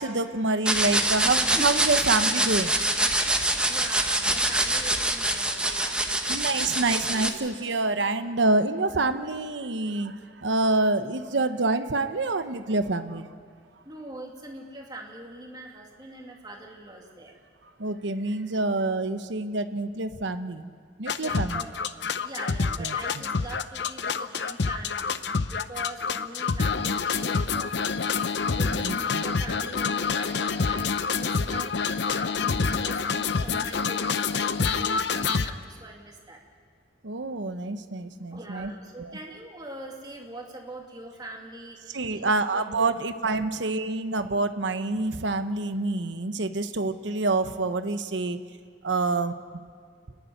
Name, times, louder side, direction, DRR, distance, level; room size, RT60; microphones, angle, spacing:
voice 1, 0.0-2.8 5.7-5.8 6.3-13.3 17.8-20.7 21.0-21.6 22.8-23.2 28.8-29.2 37.0-38.7 39.0-39.2 41.9-48.4 48.8-49.3, right 2 dB, 80° right, 10 dB, 1.0 m, -27 dB
sound 1, 0.6-7.3, right 1 dB, 5° right, 1.0 m, -25 dB
voice 2, 3.7-6.7 13.8-17.3 21.2-21.7 22.2-28.0 28.5-36.4 38.3-42.9, right 2 dB, 20° right, 0 dB, 2.4 m, -43 dB
sound 2, 21.1-35.5, left 5 dB, 70° left, 0.7 m, -27 dB
29.5 x 11.0 x 9.4 m, 2.1 s
head